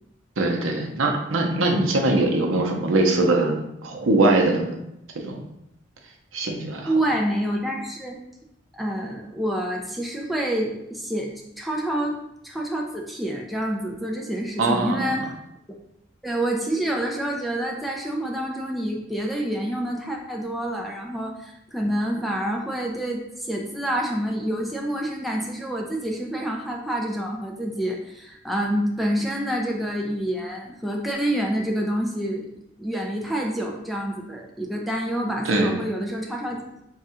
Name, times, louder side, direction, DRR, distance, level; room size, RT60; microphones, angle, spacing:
voice 1, 0.4-3.5 3.8-4.8 5.1-5.4 6.3-6.9 14.6-15.0 35.4-35.8, right 2 dB, 80° right, 2 dB, 0.7 m, -22 dB
voice 2, 6.8-8.2 8.7-12.2 12.4-15.3 16.2-32.4 32.8-36.6, right 1 dB, ahead, -1 dB, 0.4 m, -27 dB
3.6 x 2.4 x 4.2 m, 0.82 s
head